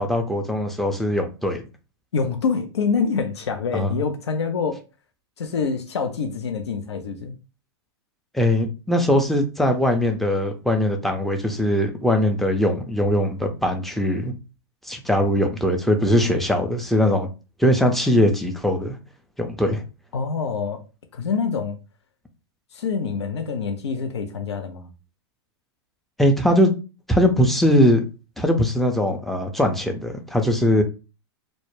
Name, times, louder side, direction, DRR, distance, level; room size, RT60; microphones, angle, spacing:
voice 1, 0.0-1.6 3.7-3.9 8.3-14.3 14.8-17.3 17.6-19.0 19.4-19.8 26.2-26.7 27.1-28.0 28.4-30.8, left 1 dB, ahead, 0.4 m, -20 dB
voice 2, 2.1-4.8 5.4-7.3 20.1-20.8 21.1-21.8 22.7-24.9, left 5 dB, 85° left, 0.4 m, -26 dB
2.1 x 2.0 x 3.0 m
hypercardioid pair, 110°, 14 cm